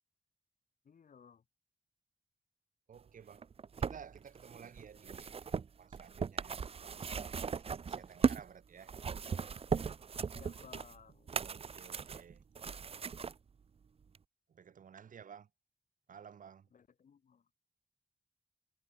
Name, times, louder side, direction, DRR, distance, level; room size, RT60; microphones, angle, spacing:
voice 1, 0.8-1.4 10.3-11.3 16.7-17.5, left 7 dB, 85° left, 5.3 m, -58 dB
voice 2, 2.9-3.5 3.8-5.5 5.8-8.9 11.4-12.4 14.5-15.5 16.1-16.7, right 7 dB, 85° right, 1.3 m, -54 dB
sound 1, 3.3-8.5 8.8-13.3 14.1-14.2, right 6 dB, 45° right, 0.6 m, -38 dB
wide cardioid pair, 135°, 13 cm